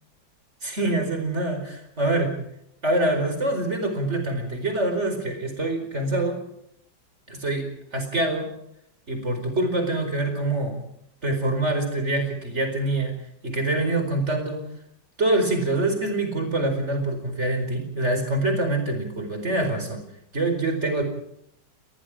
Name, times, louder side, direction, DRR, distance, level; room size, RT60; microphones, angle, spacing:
voice 1, 0.6-2.4 2.8-6.4 7.3-8.5 9.1-10.8 11.2-13.2 13.4-14.7 15.2-20.0 20.3-21.0, right 2 dB, 35° right, 6 dB, 5.0 m, -25 dB
27.5 x 21.0 x 5.0 m, 0.74 s
omnidirectional pair, 2.1 m